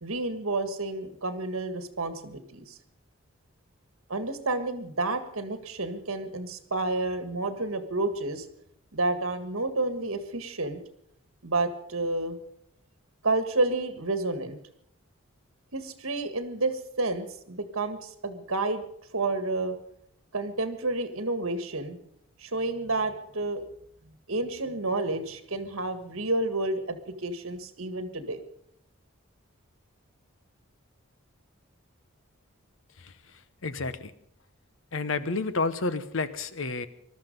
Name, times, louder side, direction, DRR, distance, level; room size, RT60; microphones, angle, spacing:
voice 1, 0.0-2.8 4.1-8.5 8.9-10.8 11.4-12.4 13.2-14.6 15.7-18.8 19.1-19.8 20.3-22.0 22.4-23.6 24.3-28.4, right 2 dB, 75° right, 9 dB, 1.7 m, -30 dB
voice 2, 33.0-34.1 34.9-36.9, left 3 dB, 65° left, 13 dB, 0.9 m, -31 dB
20.5 x 13.0 x 5.3 m, 0.72 s
head